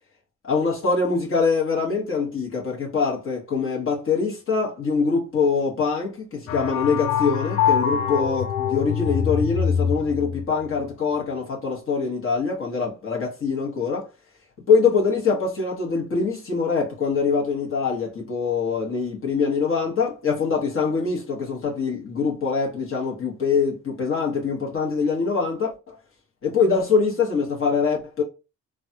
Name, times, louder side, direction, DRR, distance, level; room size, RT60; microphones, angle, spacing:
voice 1, 0.4-14.1 14.7-25.9 26.4-28.2, left 5 dB, 45° left, 1.1 m, -24 dB
sound 1, 6.5-10.4, left 8 dB, 75° left, 0.6 m, -24 dB
3.3 x 2.3 x 2.7 m
cardioid pair, 90°, 30 cm